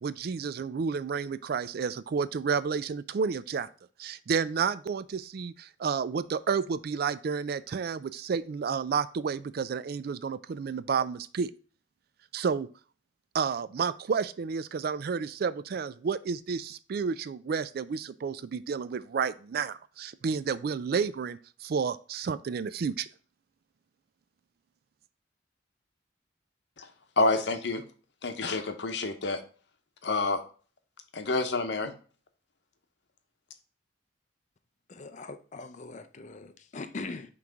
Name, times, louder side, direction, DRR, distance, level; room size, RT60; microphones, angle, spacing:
voice 1, 0.0-3.7 4.0-11.5 12.3-12.7 13.3-23.1, right 6 dB, 55° right, 0.3 m, -31 dB
voice 2, 27.2-27.8 28.2-29.4 30.0-30.4 31.1-31.9, left 3 dB, 65° left, 0.8 m, -28 dB
voice 3, 34.9-37.3, left 3 dB, 40° left, 0.5 m, -41 dB
5.8 x 3.2 x 5.1 m
head